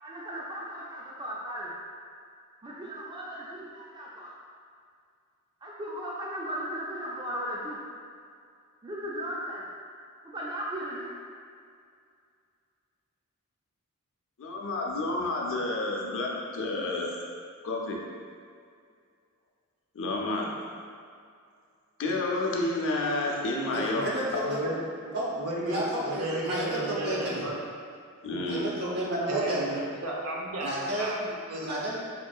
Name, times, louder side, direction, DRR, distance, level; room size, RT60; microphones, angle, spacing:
voice 1, 0.0-1.7 2.6-4.3 5.6-7.8 8.8-9.6 10.3-11.1, equal, 20° right, -5 dB, 0.4 m, -36 dB
voice 2, 14.4-17.1 17.6-18.0 19.9-20.5 22.0-24.1 24.3-24.4 28.2-28.7, left 2 dB, 60° left, -1 dB, 0.5 m, -30 dB
voice 3, 23.7-24.6 25.1-25.3 25.6-27.4 28.5-29.8 30.6-31.3 31.6-31.9, equal, 50° right, -5 dB, 0.8 m, -31 dB
voice 4, 24.4-27.5 29.3-29.5 30.0-30.7 31.0-31.1 31.5-31.7, right 2 dB, 80° right, -3 dB, 0.7 m, -33 dB
3.6 x 3.6 x 2.3 m, 2.3 s
head